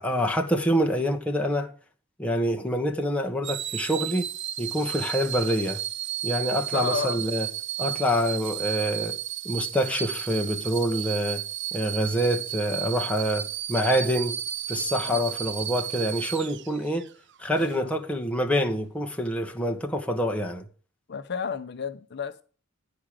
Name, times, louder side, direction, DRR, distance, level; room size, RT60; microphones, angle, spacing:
voice 1, 0.0-1.7 2.2-4.3 4.6-5.8 6.2-7.5 7.8-9.1 9.4-11.4 11.7-14.4 14.7-17.1 17.4-20.6, equal, 5° left, 1.2 m, -26 dB
sound 1, 3.4-17.1 17.6-17.8, right 11 dB, 60° right, 0.5 m, -33 dB
voice 2, 6.7-7.2 7.8-7.9 15.1-15.2 17.6-17.9 21.1-22.4, left 5 dB, 55° left, 0.6 m, -32 dB
10.5 x 5.0 x 7.5 m
head